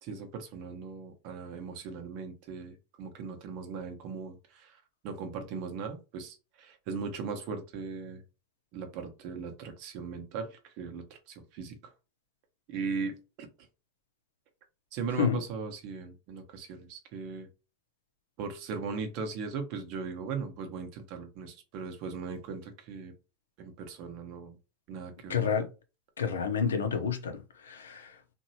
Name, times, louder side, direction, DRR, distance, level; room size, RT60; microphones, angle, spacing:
voice 1, 0.0-8.2 8.7-11.9 12.7-13.5 14.9-17.5 18.4-23.1 23.6-24.6 24.9-25.4, right 5 dB, 60° right, 0.9 m, -38 dB
voice 2, 25.3-25.7 26.2-28.3, left 7 dB, 90° left, 0.7 m, -30 dB
2.9 x 2.6 x 2.7 m
hypercardioid pair, 95°, 0 cm